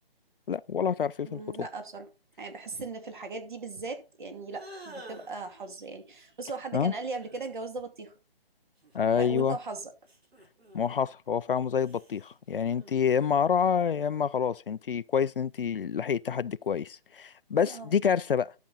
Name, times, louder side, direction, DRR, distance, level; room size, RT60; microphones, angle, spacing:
voice 1, 0.5-1.4 6.7-6.9 8.9-9.6 10.7-18.5, left 7 dB, 65° left, 0.5 m, -27 dB
voice 2, 1.3-2.1 2.4-8.1 9.2-9.9 17.6-17.9, right 3 dB, 50° right, 2.6 m, -38 dB
sound 1, 4.5-5.5 6.9-7.5 8.8-9.5 10.0-11.0 11.8-13.6, right 1 dB, 90° right, 4.8 m, -50 dB
12.0 x 6.1 x 4.1 m
hypercardioid pair, 165°, 30 cm